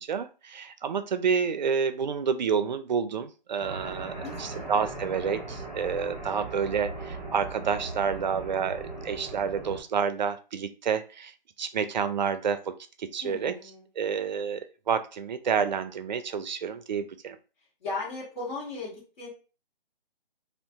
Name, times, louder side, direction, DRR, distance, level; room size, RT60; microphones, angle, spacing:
voice 1, 0.0-11.3 11.6-12.7 13.0-13.5 14.0-14.6 14.9-17.4, right 6 dB, 50° right, 11 dB, 0.4 m, -29 dB
sound 1, 3.6-9.8, right 2 dB, ahead, 0.9 m, -39 dB
voice 2, 4.2-4.7 13.2-13.9 17.8-19.3, left 3 dB, 50° left, -6 dB, 1.7 m, -37 dB
2.6 x 2.5 x 3.4 m, 0.34 s
figure-of-eight pair, 150°, 29 cm